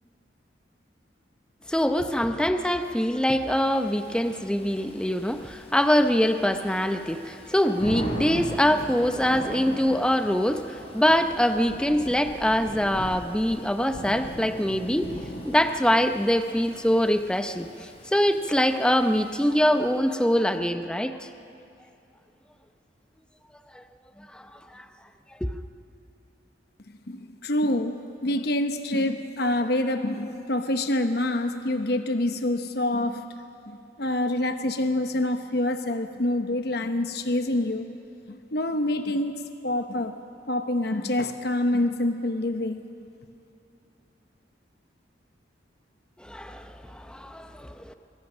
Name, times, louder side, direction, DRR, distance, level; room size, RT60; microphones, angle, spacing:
voice 1, 1.7-15.1 15.4-21.3 23.7-23.8 24.2-24.9 25.4-25.5 46.2-47.9, equal, 5° left, 8 dB, 0.7 m, -24 dB
Thunder / Rain, 3.5-20.1, equal, 35° left, 3.4 m, -39 dB
voice 2, 27.1-33.4 33.7-37.9 38.3-40.1 40.5-42.8, left 1 dB, 60° left, 7 dB, 1.0 m, -26 dB
23.5 x 23.5 x 6.2 m, 2.7 s
head